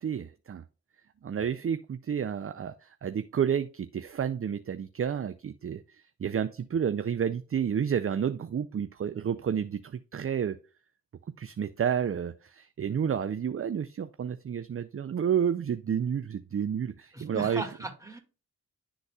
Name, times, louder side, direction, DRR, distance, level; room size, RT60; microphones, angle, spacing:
voice 1, 0.0-0.6 1.2-10.6 11.4-17.6, right 8 dB, 40° right, 0.4 m, -30 dB
voice 2, 17.1-18.2, right 3 dB, 10° right, 1.9 m, -36 dB
11.0 x 4.0 x 2.3 m
cardioid pair, 50°, 37 cm